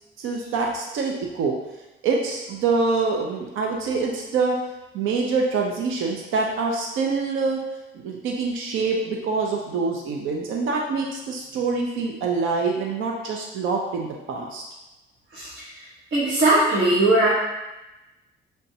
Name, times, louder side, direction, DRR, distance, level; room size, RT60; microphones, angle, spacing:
voice 1, 0.2-1.6 2.0-4.6 4.9-7.6 7.9-14.6, right 4 dB, 85° right, 0 dB, 0.6 m, -25 dB
voice 2, 16.1-17.3, right 2 dB, 70° right, -7 dB, 1.2 m, -19 dB
5.3 x 3.4 x 2.7 m, 1.0 s
cardioid pair, 90°, 20 cm